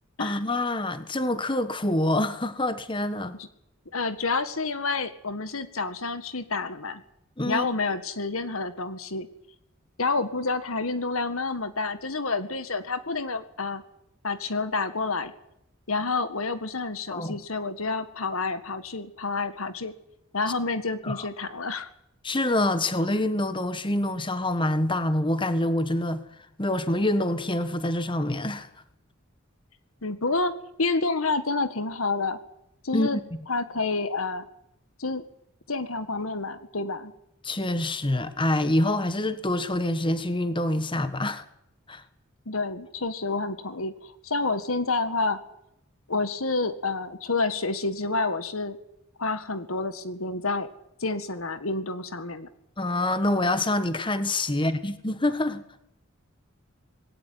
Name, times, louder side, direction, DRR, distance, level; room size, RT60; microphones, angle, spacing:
voice 1, 0.2-3.4 7.4-7.7 17.1-17.4 21.0-21.3 22.2-26.2 26.6-28.7 32.9-33.2 37.4-41.4 41.9-42.0 52.8-55.6, left 1 dB, 25° left, 1.4 m, -26 dB
voice 2, 3.9-7.0 7.5-9.3 10.0-13.8 14.2-15.3 15.9-19.9 20.3-21.9 30.0-30.5 30.8-32.4 32.8-33.2 33.5-34.4 35.0-35.2 35.7-37.1 42.5-45.4 46.1-48.8 49.2-50.7 51.0-52.5, left 3 dB, 85° left, 1.8 m, -29 dB
20.0 x 17.5 x 9.5 m
head